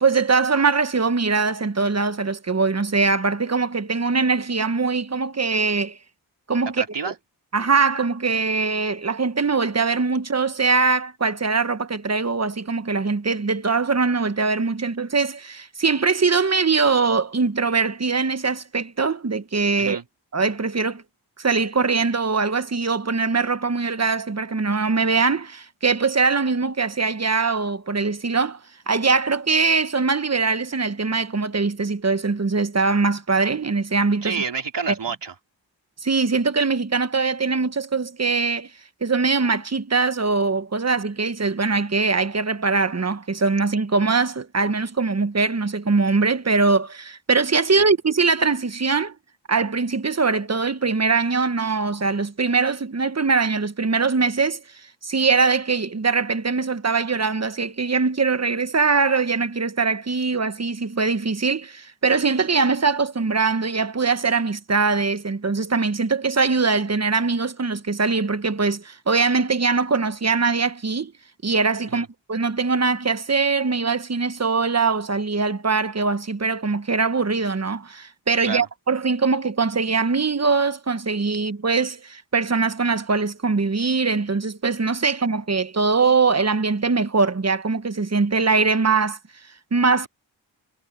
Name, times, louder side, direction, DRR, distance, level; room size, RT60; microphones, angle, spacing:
voice 1, 0.0-6.0 6.5-7.1 7.5-20.0 20.3-21.0 21.4-28.6 28.9-34.4 36.0-38.7 39.0-49.1 49.5-54.6 55.0-71.1 71.4-89.2 89.7-90.1, right 4 dB, 35° right, 1.4 m, -22 dB
voice 2, 6.8-7.1 19.8-20.0 34.2-35.3 47.8-47.9 71.9-72.1 78.4-78.7, right 5 dB, 65° right, 3.9 m, -29 dB
cardioid pair, 45°, 45 cm